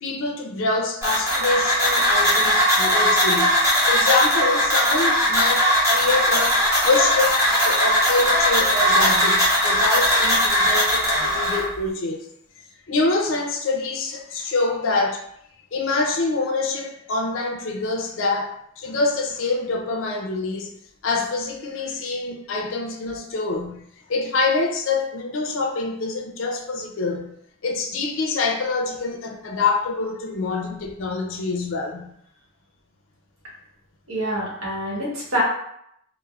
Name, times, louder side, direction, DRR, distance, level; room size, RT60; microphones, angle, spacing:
voice 1, 0.0-3.5 3.8-12.3 12.9-15.2 15.7-20.7 21.0-27.4 27.6-32.1, left 3 dB, 65° left, 2 dB, 0.4 m, -25 dB
sound 1, 1.0-11.6, equal, 15° right, 0.7 m, -19 dB
voice 2, 34.1-35.4, equal, 80° right, -4 dB, 1.0 m, -26 dB
3.2 x 2.0 x 2.3 m, 0.74 s
head